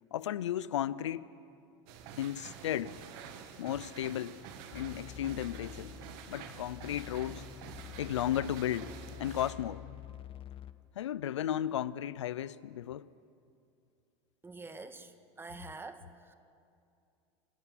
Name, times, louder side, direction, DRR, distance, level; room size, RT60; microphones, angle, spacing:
voice 1, 0.1-1.3 2.2-2.9 3.6-4.4 4.7-6.0 6.3-7.5 8.0-9.8 11.0-13.1, left 11 dB, 90° left, 0.5 m, -34 dB
sound 1, 1.9-9.5, right 7 dB, 65° right, 2.2 m, -48 dB
sound 2, 4.7-10.7, left 10 dB, 40° left, 1.0 m, -48 dB
voice 2, 14.4-16.3, right 3 dB, 15° right, 1.7 m, -47 dB
28.5 x 12.5 x 9.3 m
hypercardioid pair, 95°, 15 cm